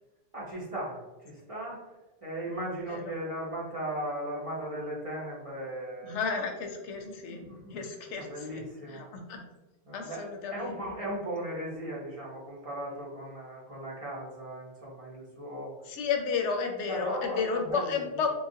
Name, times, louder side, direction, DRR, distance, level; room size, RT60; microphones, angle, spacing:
voice 1, 0.3-1.8 2.2-6.2 7.0-7.8 8.2-9.0 9.8-15.7 16.9-18.3, right 1 dB, 35° right, -5 dB, 0.7 m, -37 dB
voice 2, 6.0-7.4 7.7-9.4 9.9-11.1 15.9-18.3, left 5 dB, 85° left, 4 dB, 0.9 m, -33 dB
3.4 x 2.3 x 2.6 m, 1.1 s
omnidirectional pair, 1.2 m